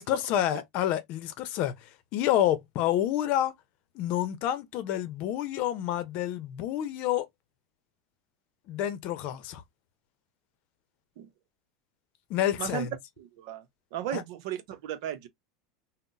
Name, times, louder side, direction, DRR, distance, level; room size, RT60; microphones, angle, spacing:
voice 1, 0.0-3.5 3.9-7.3 8.7-9.6 12.3-12.9 14.1-14.2, left 12 dB, 55° left, 0.7 m, -28 dB
voice 2, 13.2-13.6 13.9-15.3, right 10 dB, 65° right, 0.7 m, -35 dB
3.7 x 2.1 x 2.6 m
hypercardioid pair, 95°, 3 cm